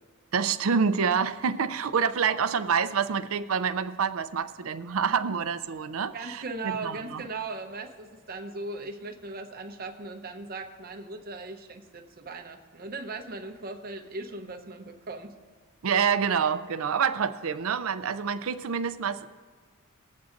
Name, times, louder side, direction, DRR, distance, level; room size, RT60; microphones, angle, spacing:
voice 1, 0.3-7.2 15.8-19.3, right 6 dB, 70° right, 12 dB, 0.5 m, -27 dB
voice 2, 6.1-15.3, right 3 dB, 45° right, 5 dB, 0.8 m, -38 dB
20.5 x 8.3 x 2.5 m, 1.5 s
head